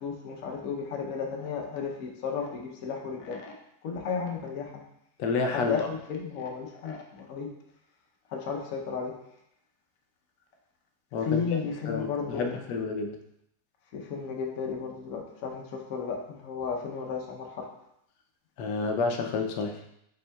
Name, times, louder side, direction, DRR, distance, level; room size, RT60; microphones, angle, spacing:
voice 1, 0.0-3.5 3.8-4.7 5.5-7.5 8.3-9.1 11.2-12.7 13.9-17.7, left 6 dB, 60° left, 0 dB, 1.1 m, -34 dB
voice 2, 5.2-5.9 11.1-11.6 11.9-13.2 18.6-19.9, left 4 dB, 90° left, 4 dB, 1.2 m, -29 dB
5.2 x 4.5 x 2.3 m, 0.78 s
omnidirectional pair, 1.8 m